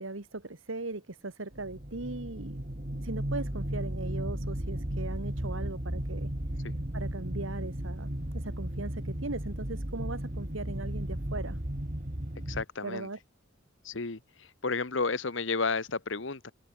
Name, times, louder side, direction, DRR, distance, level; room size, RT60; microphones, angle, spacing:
voice 1, 0.0-2.6 2.9-6.3 6.9-11.6 12.8-13.2, right 2 dB, 75° right, 1.8 m, -39 dB
sound 1, 1.5-12.6, right 1 dB, 40° right, 2.4 m, -35 dB
voice 2, 12.5-13.1 13.8-16.5, left 4 dB, 65° left, 1.3 m, -32 dB
head